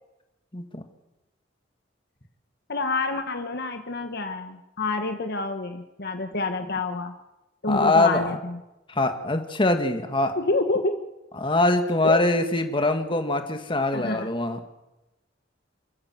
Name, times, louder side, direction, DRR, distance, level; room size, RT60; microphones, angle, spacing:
voice 1, 0.5-0.8 7.7-8.4 8.9-10.4 11.4-14.6, left 2 dB, 25° left, 6 dB, 2.0 m, -23 dB
voice 2, 2.7-7.1 7.6-8.6 10.4-11.0 12.0-12.2 13.9-14.3, left 3 dB, 60° left, 7 dB, 1.4 m, -27 dB
28.0 x 14.5 x 7.8 m, 1.0 s
head